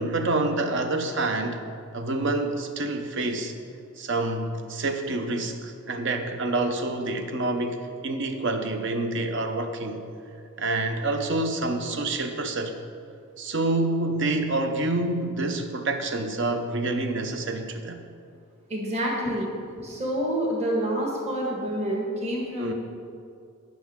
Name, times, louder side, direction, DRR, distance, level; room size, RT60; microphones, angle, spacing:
voice 1, 0.0-1.6 1.9-3.5 4.0-10.0 10.6-12.7 13.4-18.0 22.6-22.7, right 2 dB, 55° right, 6 dB, 0.8 m, -27 dB
voice 2, 18.7-19.5 19.8-22.7, equal, 30° right, -3 dB, 1.5 m, -28 dB
16.5 x 6.2 x 3.7 m, 2.4 s
head